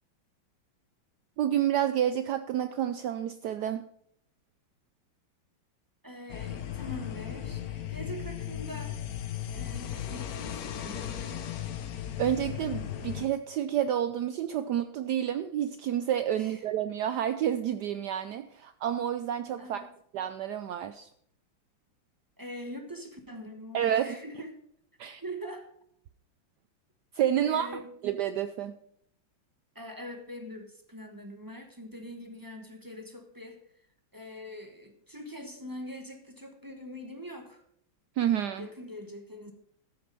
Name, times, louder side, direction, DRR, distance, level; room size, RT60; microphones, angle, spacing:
voice 1, 1.4-3.8 12.2-19.8 20.1-21.1 23.7-24.2 25.0-25.2 27.1-27.7 28.0-28.7 38.2-38.7, right 10 dB, 75° right, 10 dB, 1.0 m, -29 dB
voice 2, 6.0-9.0 9.5-11.5 16.3-16.7 19.6-19.9 22.4-24.6 25.2-25.7 27.4-27.9 29.7-33.6 34.1-37.6 38.6-39.5, equal, 15° right, 4 dB, 0.9 m, -43 dB
sound 1, 6.3-13.3, left 10 dB, 60° left, 1.1 m, -36 dB
13.5 x 6.8 x 5.3 m, 0.68 s
omnidirectional pair, 2.2 m